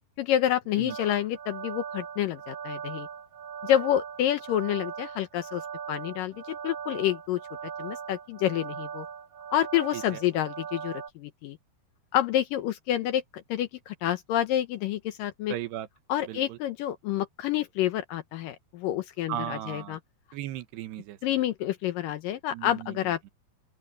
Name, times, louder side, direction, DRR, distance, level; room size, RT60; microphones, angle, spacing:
voice 1, 0.2-3.1 3.6-5.6 5.9-7.4 7.8-9.1 9.5-11.6 12.1-13.2 13.5-15.5 16.1-20.0 21.2-23.3, left 12 dB, 75° left, 2.2 m, -28 dB
sound 1, 0.9-11.1, right 7 dB, 60° right, 4.3 m, -39 dB
voice 2, 9.9-10.2 15.5-15.9 16.3-16.6 19.3-20.0 20.3-21.2 22.5-23.0, right 12 dB, 90° right, 3.3 m, -36 dB
open air
omnidirectional pair, 4.6 m